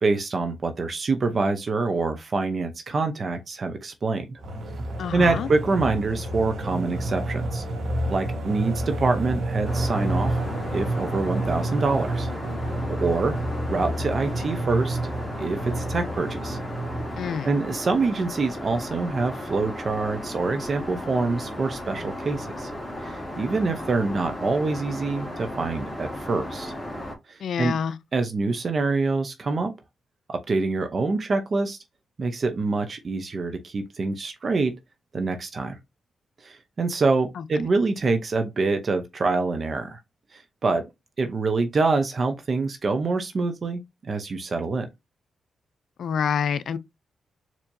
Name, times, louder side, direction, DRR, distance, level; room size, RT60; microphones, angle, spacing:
voice 1, 0.0-4.4 5.1-7.6 8.1-10.4 10.7-12.3 12.9-13.4 13.7-15.0 15.4-16.6 17.4-22.7 23.0-26.7 27.3-27.8 28.1-29.7 30.3-31.8 32.2-34.7 35.1-35.8 36.4-40.0 40.3-40.8 41.2-44.9, right 3 dB, 50° right, 0.7 m, -25 dB
sound 1, 4.4-17.5, right 1 dB, 70° right, 1.1 m, -29 dB
voice 2, 5.0-5.5 17.2-17.5 27.4-28.0 37.4-37.5 46.0-46.8, left 7 dB, 75° left, 0.4 m, -27 dB
Aircraft, 9.6-27.2, left 1 dB, 15° left, 1.4 m, -35 dB
4.4 x 2.9 x 2.6 m
cardioid pair, 70°, 0 cm